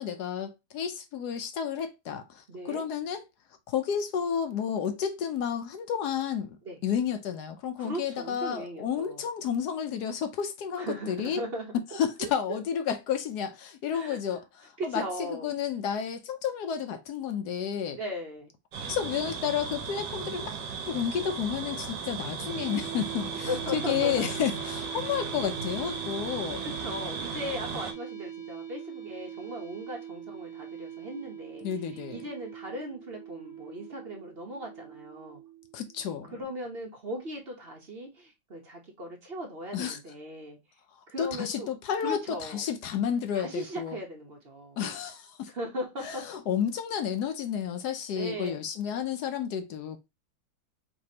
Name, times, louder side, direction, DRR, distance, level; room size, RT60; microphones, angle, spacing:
voice 1, 0.0-3.2 3.7-11.4 11.9-15.0 15.3-18.0 18.9-20.6 20.8-26.6 31.6-32.2 35.7-36.3 39.7-40.0 41.2-44.0 44.8-45.5 46.0-50.0, left 8 dB, 70° left, 1.0 m, -31 dB
voice 2, 2.5-2.8 6.6-6.8 7.8-9.2 10.8-12.3 13.9-14.2 14.8-15.5 18.0-18.5 23.3-24.3 26.6-35.4 36.3-40.6 41.1-41.8 42.0-42.6 43.3-44.8 45.5-46.3 48.1-48.5, equal, 45° right, 0.8 m, -38 dB
sound 1, 18.7-27.9, right 5 dB, 65° right, 1.2 m, -36 dB
sound 2, 22.5-36.4, right 9 dB, 45° left, 1.8 m, -42 dB
4.9 x 3.3 x 2.8 m
omnidirectional pair, 2.1 m